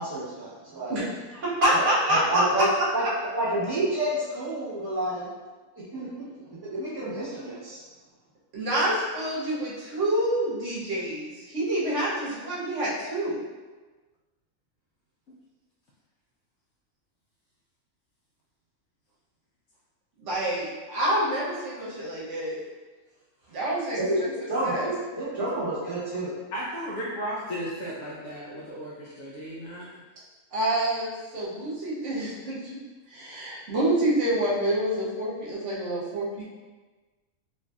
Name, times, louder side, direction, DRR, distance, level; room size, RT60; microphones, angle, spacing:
voice 1, 0.0-1.0 1.7-1.8 2.1-2.7 2.9-5.3 5.9-6.3 6.6-7.8 23.9-24.2 24.5-24.9 25.2-26.3, right 1 dB, 20° right, -11 dB, 0.9 m, -29 dB
voice 2, 0.9-2.7 8.5-13.4 20.2-22.6 23.5-24.3 24.6-24.9 30.5-32.7 33.1-36.4, right 1 dB, 55° right, -7 dB, 1.1 m, -27 dB
voice 3, 26.5-29.9, equal, 65° left, -6 dB, 0.7 m, -35 dB
3.1 x 2.5 x 2.3 m, 1.3 s
omnidirectional pair, 1.6 m